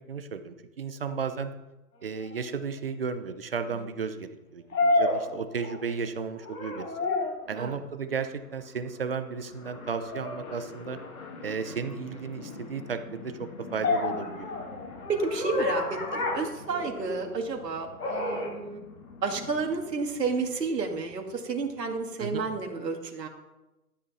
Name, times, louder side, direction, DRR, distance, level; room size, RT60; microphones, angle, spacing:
voice 1, 0.1-1.5 2.0-6.9 7.5-11.0 11.4-14.5 22.2-22.4, right 5 dB, 35° right, 9 dB, 0.7 m, -34 dB
sound 1, 2.3-2.4 4.7-6.0 6.4-7.5 10.1-10.4 13.8-17.3 18.0-18.5, left 2 dB, 75° left, 4.2 m, -29 dB
sound 2, 6.3-22.1, left 4 dB, 60° left, 2.5 m, -47 dB
voice 2, 15.1-18.8 19.2-23.3, right 4 dB, 80° right, 2 dB, 2.2 m, -31 dB
13.0 x 8.1 x 4.2 m, 1.0 s
hypercardioid pair, 160°, 49 cm